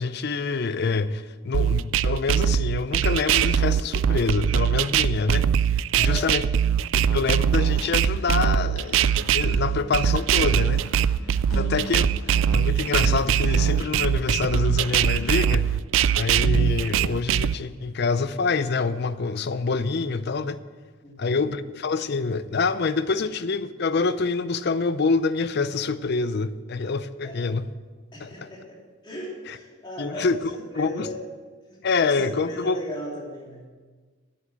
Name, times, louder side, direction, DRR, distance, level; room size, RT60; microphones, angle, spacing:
voice 1, 0.0-5.5 5.9-6.5 6.9-10.8 11.5-12.1 12.5-15.8 16.1-20.6 21.2-27.7 28.2-28.5 29.5-29.6 30.0-31.1 31.8-32.8, left 4 dB, 50° left, 14 dB, 0.5 m, -26 dB
sound 1, 1.5-17.5, right 8 dB, 60° right, 0.3 m, -22 dB
voice 2, 5.9-6.3 11.5-11.9 21.0-21.4 27.2-27.4 28.1-28.6 29.0-31.2 31.6-33.7, equal, 20° left, -4 dB, 2.9 m, -37 dB
Musical instrument, 7.6-15.6, left 2 dB, 90° left, 1.6 m, -41 dB
10.5 x 8.3 x 7.4 m, 1.4 s
head